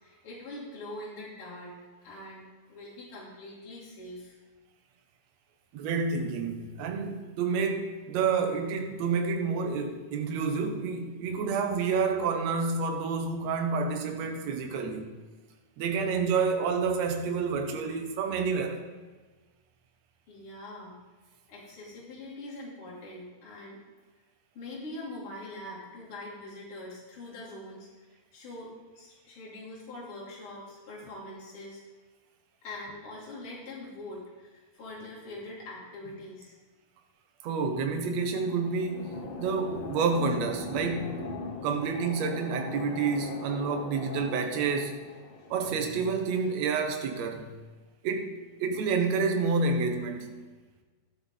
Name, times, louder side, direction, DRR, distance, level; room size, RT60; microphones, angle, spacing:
voice 1, 0.0-1.8 2.0-4.3 20.3-21.0 21.5-23.8 24.5-27.9 28.3-31.8 32.6-36.5, left 1 dB, 40° left, 3.4 m, -43 dB
voice 2, 5.7-15.1 15.8-18.8 37.4-41.4 41.6-45.0 45.5-47.5 48.0-48.3 48.6-50.3, right 5 dB, 65° right, 1.7 m, -29 dB
sound 1, 38.1-46.5, left 3 dB, 65° left, 3.2 m, -40 dB
13.0 x 8.3 x 4.0 m
omnidirectional pair, 4.3 m